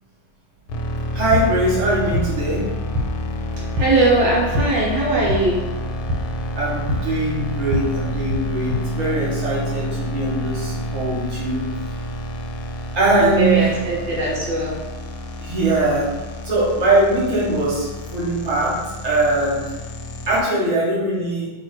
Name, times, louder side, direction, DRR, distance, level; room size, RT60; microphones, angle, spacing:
sound 1, 0.7-20.4, equal, 90° left, 1.4 m, -29 dB
voice 1, 1.1-2.6 6.5-11.6 12.9-13.7 15.4-16.1 16.4-18.7 19.0-19.6 20.3-21.5, right 1 dB, 25° right, -7 dB, 1.2 m, -21 dB
sound 2, 1.3-8.8, equal, 85° right, 1.5 m, -28 dB
voice 2, 3.7-5.8 13.1-14.8, right 2 dB, 70° right, -4 dB, 1.4 m, -20 dB
5.4 x 2.9 x 3.1 m, 1.1 s
omnidirectional pair, 2.2 m